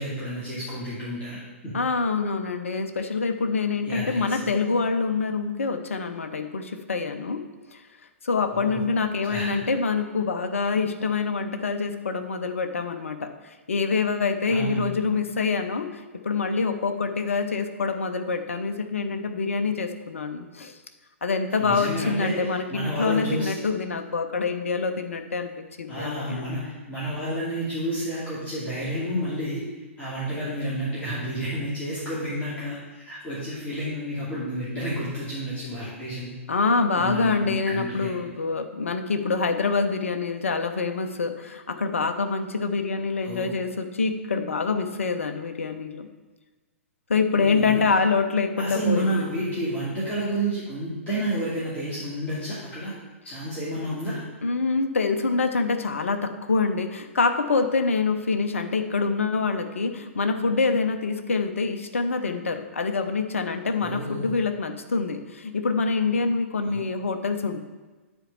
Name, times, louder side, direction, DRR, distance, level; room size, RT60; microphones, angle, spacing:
voice 1, 0.0-1.8 3.8-4.5 8.5-8.9 9.3-9.6 14.5-14.9 21.6-23.5 25.9-29.6 30.0-36.3 36.9-38.1 43.2-43.6 47.3-47.9 48.6-52.9 53.2-54.2 63.8-64.3 66.7-66.8, right 1 dB, 20° left, -9 dB, 2.7 m, -30 dB
voice 2, 1.7-7.4 7.7-7.8 8.2-20.7 21.2-26.6 36.5-46.1 47.1-49.2 54.4-67.6, left 4 dB, 70° left, 7 dB, 0.9 m, -26 dB
9.0 x 4.5 x 7.1 m, 1.3 s
figure-of-eight pair, 110°, 7 cm